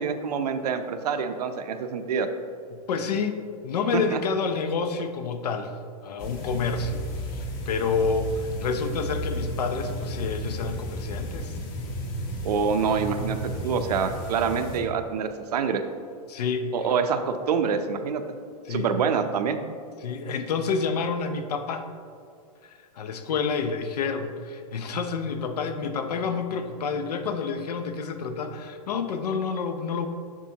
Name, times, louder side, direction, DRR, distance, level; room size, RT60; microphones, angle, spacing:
voice 1, 0.0-2.3 3.9-4.2 12.4-15.8 16.7-18.2 18.7-19.6, right 6 dB, 80° right, 8 dB, 0.7 m, -26 dB
voice 2, 2.7-5.7 6.0-11.6 16.3-16.7 18.7-18.9 20.0-21.9 22.6-30.1, left 5 dB, 85° left, 8 dB, 0.7 m, -29 dB
sound 1, 6.2-14.8, equal, 40° left, 1.1 m, -33 dB
7.3 x 6.3 x 2.9 m, 2.3 s
supercardioid pair, 175°, 20 cm